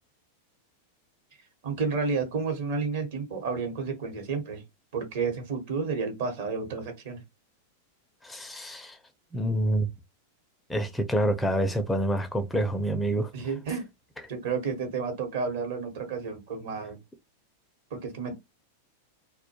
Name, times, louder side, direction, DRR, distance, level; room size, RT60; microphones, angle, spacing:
voice 1, 1.6-4.6 4.9-7.2 13.3-13.9 14.3-17.0 17.9-18.3, right 5 dB, 65° right, 1.0 m, -31 dB
voice 2, 8.2-9.0 9.3-9.9 10.7-13.3, right 1 dB, 10° left, 0.4 m, -27 dB
2.2 x 2.2 x 2.8 m
hypercardioid pair, 100°, 0 cm